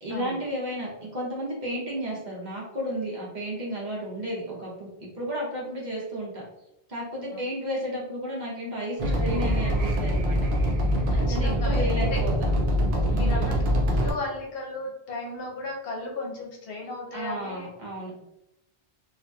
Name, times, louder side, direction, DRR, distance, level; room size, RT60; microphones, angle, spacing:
voice 1, 0.0-6.4 6.9-10.4 11.1-12.5 13.1-13.7 17.1-18.1, right 1 dB, 50° right, -5 dB, 0.9 m, -33 dB
sound 1, 9.0-14.1, equal, 75° right, 0.8 m, -24 dB
voice 2, 11.2-11.9 12.1-12.2 13.2-13.6 14.0-17.7, left 2 dB, 70° left, -1 dB, 0.8 m, -35 dB
2.8 x 2.4 x 2.2 m, 0.86 s
omnidirectional pair, 1.0 m